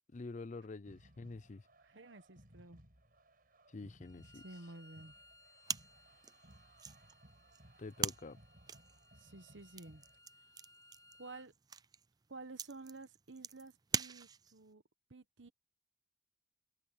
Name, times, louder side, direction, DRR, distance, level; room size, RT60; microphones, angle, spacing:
voice 1, 0.0-1.6 3.7-4.4 7.8-8.4, left 3 dB, 40° left, 0.5 m, -47 dB
sound 1, 0.8-10.2, right 1 dB, 45° right, 6.7 m, -63 dB
voice 2, 1.8-2.8 4.3-5.1 9.2-10.0 11.2-11.5 12.3-14.8 15.1-15.5, right 2 dB, 70° right, 1.3 m, -52 dB
Bowed string instrument, 4.0-11.5, left 1 dB, 20° left, 3.5 m, -65 dB
sound 2, 5.6-14.7, right 7 dB, 20° right, 0.4 m, -44 dB
head